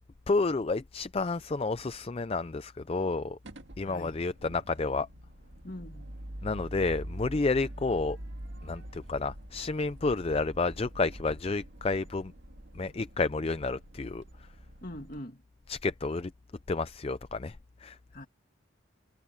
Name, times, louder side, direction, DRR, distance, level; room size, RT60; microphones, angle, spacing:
voice 1, 0.3-3.4 3.8-5.1 6.4-8.2 8.6-12.3 12.8-14.2 15.7-16.3 16.7-17.5 17.8-18.0, left 3 dB, 30° left, 0.4 m, -30 dB
sound 1, 3.4-15.2, right 1 dB, 65° right, 1.9 m, -45 dB
voice 2, 3.9-4.3 5.6-6.1 14.8-15.4 18.1-18.3, left 1 dB, 45° left, 2.6 m, -43 dB
head